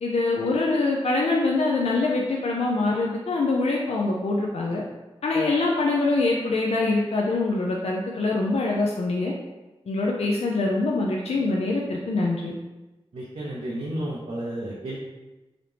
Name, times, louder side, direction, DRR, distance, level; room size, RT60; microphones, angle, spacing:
voice 1, 0.0-4.8 5.2-9.3 9.9-12.5, left 3 dB, 80° left, -2 dB, 0.5 m, -24 dB
voice 2, 13.1-15.0, right 1 dB, 85° right, -5 dB, 0.6 m, -32 dB
3.9 x 2.8 x 3.3 m, 1.1 s
wide cardioid pair, 55°, 10 cm